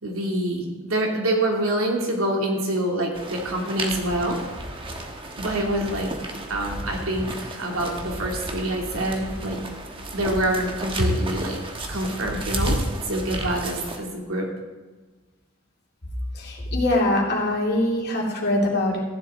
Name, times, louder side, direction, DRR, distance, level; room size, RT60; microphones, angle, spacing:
voice 1, 0.0-4.4 5.4-6.1 6.5-9.6 10.1-11.6 11.9-12.8 13.1-14.5, right 1 dB, 85° right, 0 dB, 2.6 m, -26 dB
sound 1, 3.1-14.0, right 1 dB, 25° right, 1.3 m, -32 dB
voice 2, 16.3-19.0, left 1 dB, 55° left, -2 dB, 2.7 m, -23 dB
14.5 x 10.5 x 3.7 m, 1.3 s
head